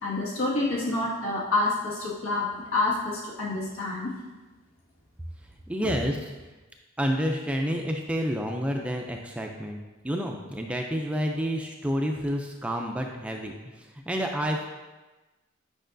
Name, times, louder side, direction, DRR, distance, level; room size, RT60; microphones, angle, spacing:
voice 1, 0.0-4.1 5.8-5.9, left 2 dB, 80° left, -5 dB, 1.8 m, -28 dB
voice 2, 5.7-6.3 7.0-14.7, equal, 5° right, 2 dB, 0.3 m, -29 dB
8.7 x 5.4 x 2.6 m, 1.2 s
head